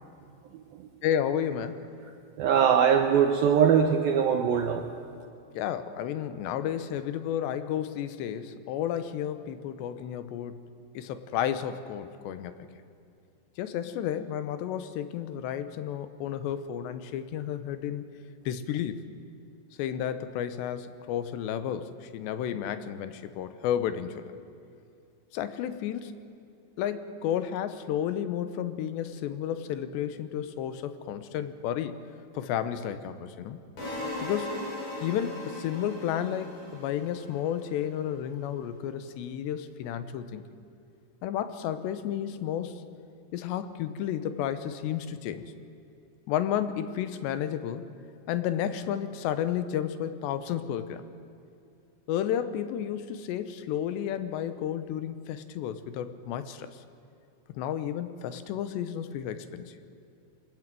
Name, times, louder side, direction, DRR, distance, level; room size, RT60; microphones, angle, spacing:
voice 1, 1.0-1.8 5.5-10.6 10.9-12.5 13.6-18.0 18.5-19.0 19.8-24.3 25.3-26.2 26.8-32.0 32.3-33.6 34.2-34.7 35.0-40.4 41.2-42.8 43.3-45.5 46.3-47.9 48.3-51.0 52.1-56.8 57.6-59.7, left 10 dB, 75° left, 11 dB, 3.0 m, -32 dB
voice 2, 2.4-4.9, right 7 dB, 75° right, 5 dB, 2.2 m, -22 dB
sound 1, 33.8-37.8, left 2 dB, 55° left, 10.0 m, -38 dB
24.5 x 21.0 x 9.2 m, 2.5 s
omnidirectional pair, 5.4 m